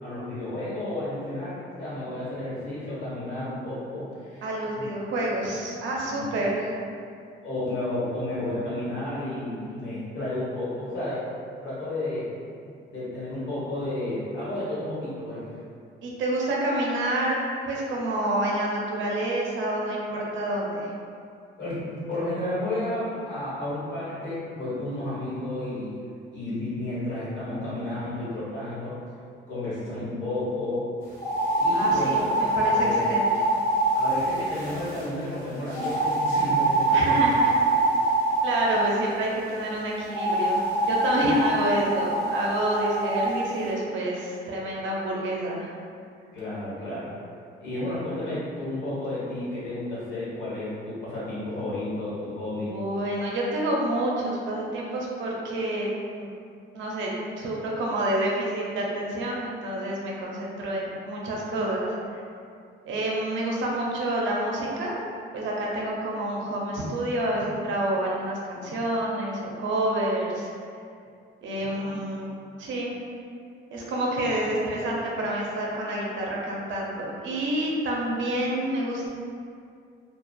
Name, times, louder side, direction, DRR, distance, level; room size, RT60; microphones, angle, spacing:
voice 1, 0.0-4.4 4.7-4.9 5.9-6.3 7.4-11.3 11.6-12.3 12.9-15.5 21.6-26.0 26.3-29.0 29.5-30.8 31.6-33.0 33.9-37.3 46.3-47.2 47.6-52.7 71.5-72.2, left 1 dB, 65° left, -9 dB, 1.2 m, -32 dB
voice 2, 4.4-6.7 16.0-17.4 17.7-20.9 31.7-33.4 36.9-37.5 37.9-38.0 38.4-45.7 52.5-55.9 56.2-56.3 56.7-57.1 57.4-61.9 62.8-64.9 65.3-70.5 71.4-73.0 73.7-79.1, right 1 dB, 75° right, -3 dB, 0.5 m, -28 dB
sound 1, 31.1-35.0 35.7-39.0 40.1-43.3, right 2 dB, 10° left, 1.1 m, -24 dB
2.4 x 2.3 x 2.2 m, 2.4 s
cardioid pair, 90°, 20 cm